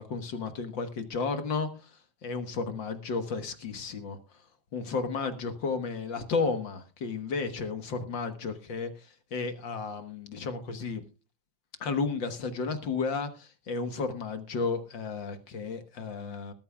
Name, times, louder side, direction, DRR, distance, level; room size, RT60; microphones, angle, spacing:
voice 1, 0.0-4.2 4.7-11.0 11.8-16.5, left 4 dB, 55° left, 1.5 m, -33 dB
20.0 x 13.5 x 2.3 m
omnidirectional pair, 3.3 m